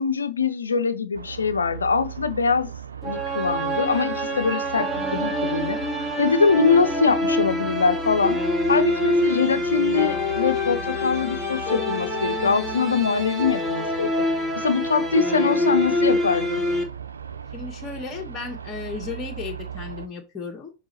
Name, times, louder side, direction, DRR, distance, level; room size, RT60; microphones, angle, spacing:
voice 1, 0.0-2.7 3.0-5.8 6.2-8.4 8.7-14.1 14.6-16.6, left 5 dB, 75° left, 0.7 m, -23 dB
sound 1, 1.1-20.1, right 7 dB, 75° right, 0.6 m, -39 dB
sound 2, 3.0-16.8, left 1 dB, 5° right, 2.0 m, -25 dB
voice 2, 4.9-5.4 17.5-20.7, left 5 dB, 20° left, 1.7 m, -35 dB
6.8 x 3.4 x 4.2 m
figure-of-eight pair, 90°, 0 cm